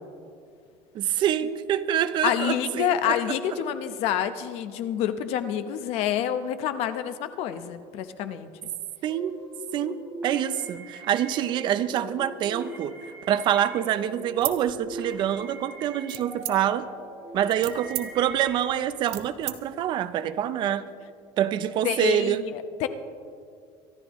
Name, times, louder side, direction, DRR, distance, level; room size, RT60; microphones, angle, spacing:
voice 1, 0.9-3.3 9.0-9.4 9.7-16.9 17.3-20.8 21.4-22.4, right 10 dB, 40° right, 12 dB, 0.6 m, -26 dB
voice 2, 2.2-8.5 21.8-22.9, left 9 dB, 55° left, 10 dB, 0.9 m, -27 dB
sound 1, 9.0-18.6, equal, 15° right, 3.2 m, -41 dB
sound 2, 14.3-15.4 16.1-16.9 17.3-19.6, right 14 dB, 60° right, 1.1 m, -35 dB
25.0 x 12.0 x 3.1 m, 2.4 s
cardioid pair, 165°, 12 cm